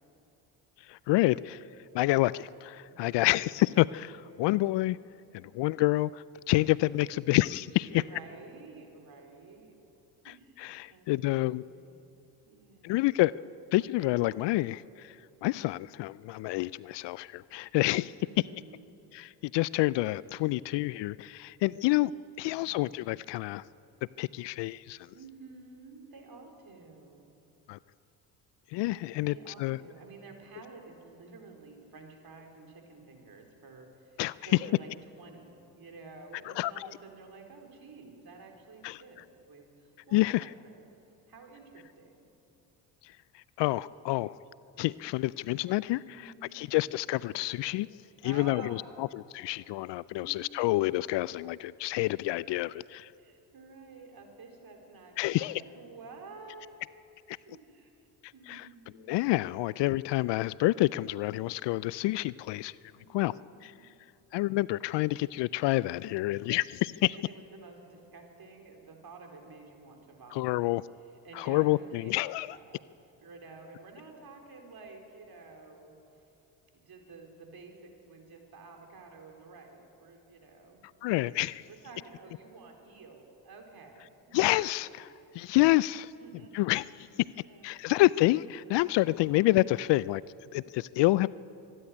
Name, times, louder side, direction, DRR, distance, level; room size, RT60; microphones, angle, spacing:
voice 1, 0.9-1.6 1.9-5.0 5.3-7.9 10.6-11.6 12.8-13.4 13.7-15.2 15.4-18.1 19.1-22.1 22.4-23.6 24.2-25.1 27.7-27.8 28.7-29.8 34.2-34.4 34.6-34.7 36.5-36.9 38.8-39.0 40.1-40.5 43.0-44.4 44.8-46.0 46.5-47.9 48.2-49.1 49.3-53.1 55.2-55.6 57.3-57.4 58.5-58.7 59.1-62.8 63.1-63.3 63.6-63.7 64.3-67.1 70.3-70.8 71.4-72.6 81.0-81.6 84.3-85.1 85.3-86.1 86.5-87.1 87.6-90.2 90.5-91.3, left 18 dB, 60° left, 20 dB, 0.5 m, -28 dB
voice 2, 2.8-3.3 7.9-9.7 10.2-12.0 12.4-13.1 18.2-18.9 22.4-23.1 25.1-27.3 29.2-34.9 35.2-40.9 41.3-42.3 46.0-46.6 48.2-48.8 50.2-50.4 53.2-56.8 57.5-59.3 63.0-63.9 67.1-70.6 71.0-72.1 72.5-72.8 73.2-76.3 76.7-80.8 81.7-85.0 86.2-87.7, right 4 dB, 45° right, 3 dB, 4.5 m, -51 dB
25.5 x 11.0 x 9.8 m, 2.9 s
hypercardioid pair, 60°, 50 cm